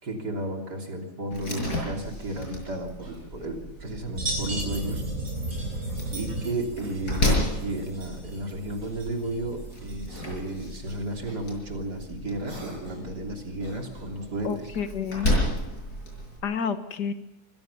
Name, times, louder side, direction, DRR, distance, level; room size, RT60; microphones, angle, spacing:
voice 1, 0.0-5.0 6.1-14.7, right 1 dB, 80° right, 2 dB, 3.9 m, -33 dB
Slam, 1.3-16.4, left 1 dB, 70° left, 6.7 m, -33 dB
Cough, 3.0-3.8 5.1-6.3 7.5-8.0 8.8-9.6 10.1-10.7 11.2-11.5 12.5-13.2 13.6-14.4 15.2-15.8, right 1 dB, 55° right, 7.1 m, -48 dB
sound 1, 4.1-11.2, right 1 dB, 40° right, 6.6 m, -35 dB
voice 2, 14.4-15.5 16.4-17.1, left 6 dB, 85° left, 9 dB, 2.0 m, -30 dB
24.5 x 17.0 x 7.1 m, 0.92 s
omnidirectional pair, 1.7 m